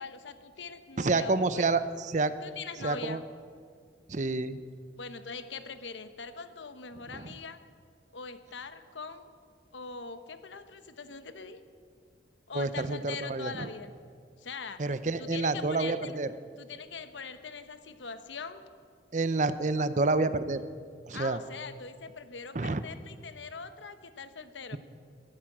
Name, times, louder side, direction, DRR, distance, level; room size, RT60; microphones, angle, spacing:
voice 1, 0.0-1.6 2.4-3.2 5.0-7.6 8.1-9.3 9.7-11.6 12.5-13.9 14.4-14.8 15.2-16.1 16.6-18.7 21.1-24.8, left 5 dB, 85° left, 10 dB, 1.0 m, -42 dB
voice 2, 1.0-2.3 2.8-3.2 4.1-4.6 7.1-7.3 12.5-13.7 14.8-16.3 19.1-20.6 21.1-21.4 22.5-22.8, right 3 dB, 40° right, 13 dB, 0.6 m, -28 dB
13.5 x 10.5 x 9.0 m, 2.1 s
head